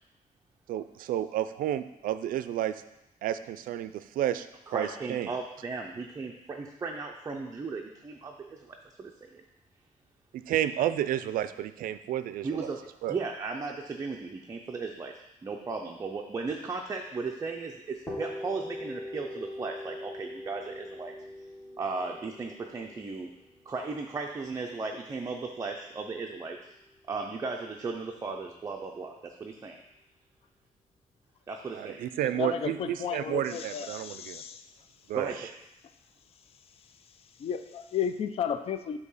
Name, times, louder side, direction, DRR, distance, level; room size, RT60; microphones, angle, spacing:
voice 1, 0.7-2.8 3.2-5.3 10.3-12.7 13.0-13.2 31.7-34.4 35.1-35.3, right 11 dB, 80° right, 12 dB, 0.4 m, -31 dB
voice 2, 4.7-9.4 12.4-12.8 13.1-15.1 15.4-21.1 21.8-23.3 23.7-26.6 27.1-29.8 31.5-32.1 35.1-35.4, right 4 dB, 20° right, 1 dB, 0.4 m, -36 dB
sound 1, 18.1-25.8, left 1 dB, 20° left, 1.2 m, -42 dB
voice 3, 32.3-34.6 37.4-39.0, left 8 dB, 45° left, 10 dB, 0.4 m, -33 dB
8.0 x 2.8 x 5.5 m, 0.89 s
cardioid pair, 155°, 14 cm